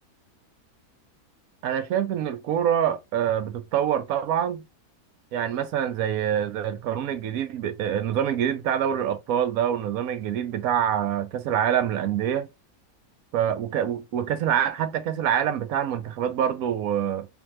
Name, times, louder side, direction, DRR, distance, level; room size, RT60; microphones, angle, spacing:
voice 1, 1.6-4.6 5.3-12.5 13.3-17.3, right 9 dB, 75° right, 1.0 m, -25 dB
3.4 x 2.8 x 3.1 m
omnidirectional pair, 1.6 m